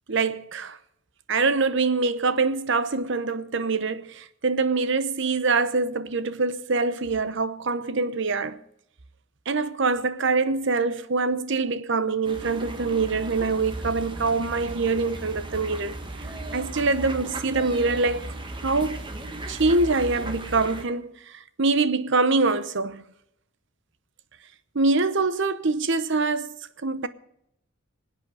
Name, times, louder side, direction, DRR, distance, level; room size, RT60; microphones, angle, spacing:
voice 1, 0.1-0.8 1.3-8.6 9.5-16.0 16.5-18.3 18.6-19.0 19.5-23.0 24.7-26.6 26.8-27.1, right 3 dB, 60° right, 0.9 m, -24 dB
sound 1, 12.2-20.8, right 2 dB, 25° right, 1.5 m, -36 dB
25.5 x 8.7 x 4.9 m
head